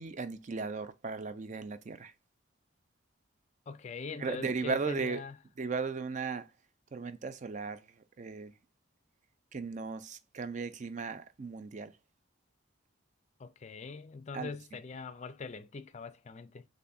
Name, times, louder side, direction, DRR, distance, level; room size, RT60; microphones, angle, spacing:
voice 1, 0.0-2.1 4.2-5.2 5.6-6.5 6.9-7.9 8.2-8.5 9.5-11.9 14.3-14.5, right 4 dB, 35° right, 0.4 m, -36 dB
voice 2, 3.7-5.3 13.4-16.7, left 4 dB, 35° left, 0.4 m, -42 dB
6.7 x 2.6 x 2.6 m
head